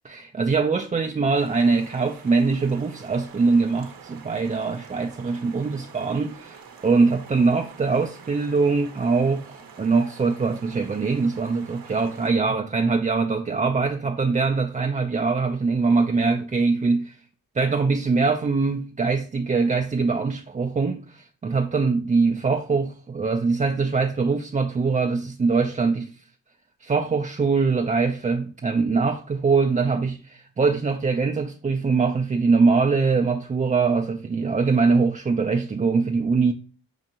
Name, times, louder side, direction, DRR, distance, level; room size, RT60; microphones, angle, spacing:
voice 1, 0.0-17.2 17.6-26.1 26.8-36.5, right 4 dB, 20° right, 0.3 m, -23 dB
sound 1, 1.3-12.3, right 6 dB, 70° right, 0.7 m, -46 dB
5.5 x 2.5 x 2.8 m
cardioid pair, 45°, 36 cm